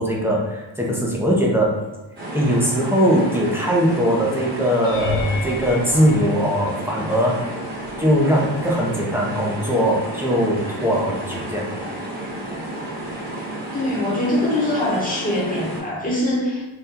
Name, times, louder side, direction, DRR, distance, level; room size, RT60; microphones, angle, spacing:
voice 1, 0.0-1.8 2.3-7.4 8.0-11.7, equal, 5° right, -4 dB, 0.4 m, -20 dB
sound 1, 2.2-15.8, right 1 dB, 20° right, 1.1 m, -31 dB
sound 2, 4.8-7.1 7.8-8.3 8.6-8.8 13.1-13.2, left 2 dB, 85° left, 0.7 m, -30 dB
voice 2, 13.7-16.7, left 1 dB, 15° left, -5 dB, 0.9 m, -23 dB
2.8 x 2.2 x 3.6 m, 1.1 s
wide cardioid pair, 145°, 48 cm